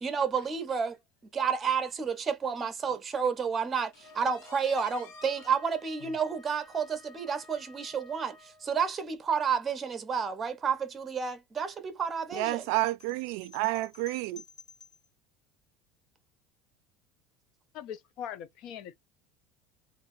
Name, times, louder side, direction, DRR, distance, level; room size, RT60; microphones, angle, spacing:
voice 1, 0.0-1.0 1.3-12.7, right 6 dB, 25° right, 0.8 m, -30 dB
sound 1, 3.9-5.6 6.1-6.2 6.6-6.7 7.1-7.2 8.2-8.3, left 5 dB, 85° left, 1.3 m, -51 dB
Wind instrument woodwind instrument, 4.0-8.9, left 2 dB, 10° left, 1.2 m, -55 dB
voice 2, 12.3-14.4, right 18 dB, 70° right, 0.4 m, -30 dB
sound 2, 12.6-15.1, left 5 dB, 35° left, 1.6 m, -53 dB
voice 3, 17.7-19.0, left 9 dB, 60° left, 0.6 m, -41 dB
3.0 x 2.6 x 2.7 m
supercardioid pair, 135°, 0 cm